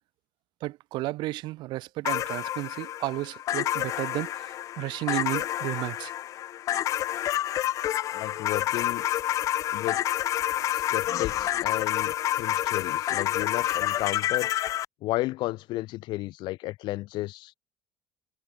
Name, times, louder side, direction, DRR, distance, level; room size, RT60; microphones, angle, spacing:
voice 1, 0.6-6.1, right 18 dB, 65° right, 3.2 m, -33 dB
sound 1, 2.0-14.9, left 12 dB, 40° left, 0.4 m, -28 dB
voice 2, 8.1-9.0 9.7-10.0 10.7-14.5 15.0-17.5, left 18 dB, 65° left, 2.9 m, -33 dB
cardioid pair, 155°, 9 cm